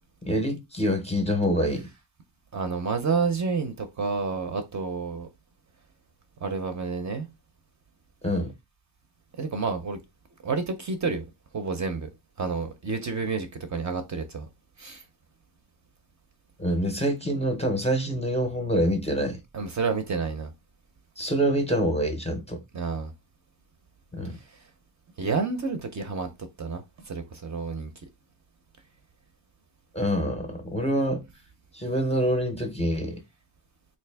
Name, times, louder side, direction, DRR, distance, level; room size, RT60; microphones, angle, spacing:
voice 1, 0.2-1.9 8.2-8.5 16.6-19.4 21.2-22.6 24.1-24.3 29.9-31.2 31.7-33.2, equal, 15° left, 0.5 m, -26 dB
voice 2, 2.5-5.3 6.4-7.3 9.4-10.0 10.4-11.2 11.5-12.1 12.4-14.5 14.8-15.0 19.5-20.5 22.7-23.1 24.3-24.4 25.2-27.9, right 4 dB, 40° right, 0.5 m, -29 dB
3.4 x 2.7 x 3.3 m
wide cardioid pair, 175°, 45 cm